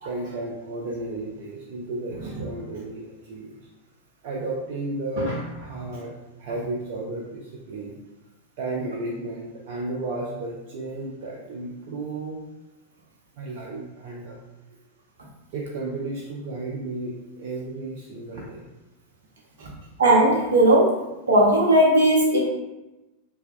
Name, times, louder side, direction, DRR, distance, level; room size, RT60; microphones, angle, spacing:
voice 1, 0.0-3.6 4.2-6.1 6.4-7.9 8.6-12.4 13.4-14.4 15.5-18.6 19.6-19.9, right 2 dB, 50° right, -3 dB, 0.4 m, -33 dB
voice 2, 20.0-21.0 21.3-22.4, right 1 dB, 70° right, -3 dB, 0.8 m, -17 dB
2.8 x 2.2 x 3.4 m, 1.0 s
figure-of-eight pair, 90°, 0 cm